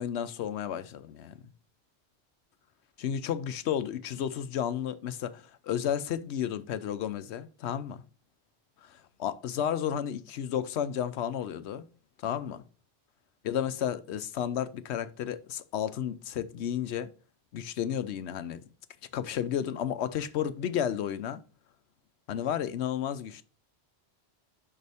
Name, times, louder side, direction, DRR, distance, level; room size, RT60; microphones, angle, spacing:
voice 1, 0.0-1.4 3.0-8.0 8.8-11.8 12.2-12.6 13.4-17.1 17.5-18.6 19.1-21.4 22.3-23.4, left 9 dB, 90° left, 0.9 m, -32 dB
6.7 x 5.9 x 3.5 m
omnidirectional pair, 1.1 m